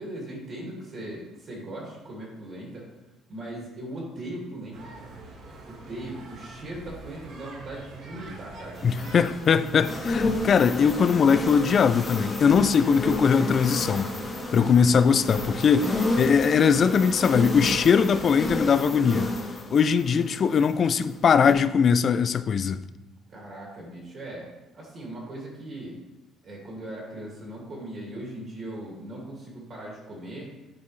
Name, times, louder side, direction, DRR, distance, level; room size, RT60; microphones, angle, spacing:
voice 1, 0.0-2.9 3.3-5.1 5.6-9.2 23.3-24.5 24.7-25.9 26.4-30.5, right 1 dB, 40° right, 2.2 m, -39 dB
sound 1, 4.7-18.6, right 2 dB, 65° right, 1.5 m, -45 dB
voice 2, 8.8-14.1 14.5-19.3 19.7-22.8, left 6 dB, 40° left, 0.3 m, -21 dB
sound 2, 8.8-20.9 21.3-21.5, left 2 dB, 20° left, 1.3 m, -31 dB
10.0 x 4.4 x 3.2 m
cardioid pair, 125°, 0 cm